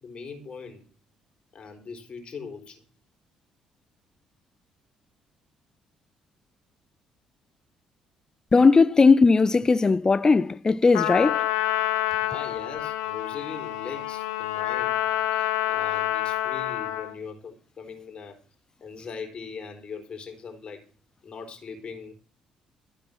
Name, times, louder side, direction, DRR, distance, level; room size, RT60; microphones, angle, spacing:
voice 1, 0.0-0.8 1.5-2.8 12.2-18.4 18.8-20.9 21.2-22.1, left 5 dB, 45° left, 4.3 m, -40 dB
voice 2, 8.5-11.5, left 4 dB, 25° left, 0.6 m, -18 dB
Trumpet, 10.9-17.2, left 14 dB, 70° left, 1.2 m, -27 dB
14.5 x 8.5 x 6.1 m
figure-of-eight pair, 45°, 3 cm